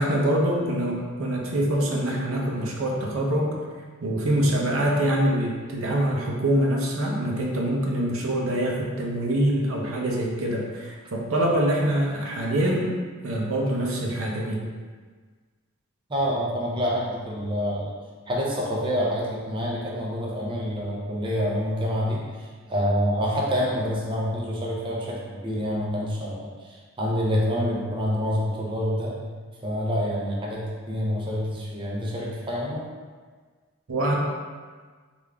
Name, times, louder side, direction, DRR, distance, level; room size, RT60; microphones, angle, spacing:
voice 1, 0.0-3.6 4.0-12.9 13.2-14.6 33.9-34.2, right 1 dB, 85° right, -2 dB, 0.6 m, -24 dB
voice 2, 16.1-17.9 18.3-29.1 29.6-32.8, equal, 25° right, -4 dB, 0.5 m, -27 dB
3.5 x 2.5 x 3.3 m, 1.5 s
head